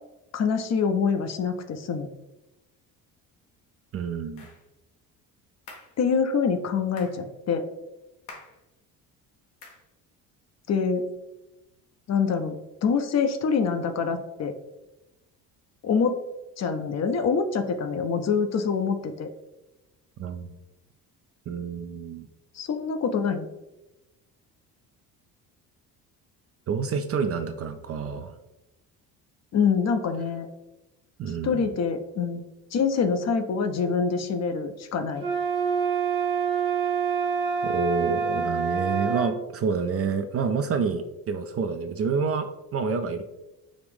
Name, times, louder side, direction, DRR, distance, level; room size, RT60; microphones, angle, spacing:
voice 1, 0.3-2.1 6.0-7.7 10.7-11.0 12.1-14.5 15.8-16.2 16.6-19.3 22.5-23.5 29.5-30.5 31.4-32.4 32.7-35.3, left 5 dB, 40° left, 8 dB, 0.5 m, -25 dB
voice 2, 3.9-4.5 20.2-20.5 21.5-22.3 26.7-28.3 31.2-31.7 37.6-43.2, right 5 dB, 35° right, 8 dB, 0.4 m, -28 dB
sound 1, 4.4-4.6 5.7-6.0 7.0-7.2 8.3-8.6 9.6-9.9, left 3 dB, 85° left, 1.0 m, -46 dB
sound 2, 35.2-39.3, right 6 dB, 85° right, 0.9 m, -26 dB
5.0 x 2.5 x 3.3 m, 0.98 s
hypercardioid pair, 60°, 43 cm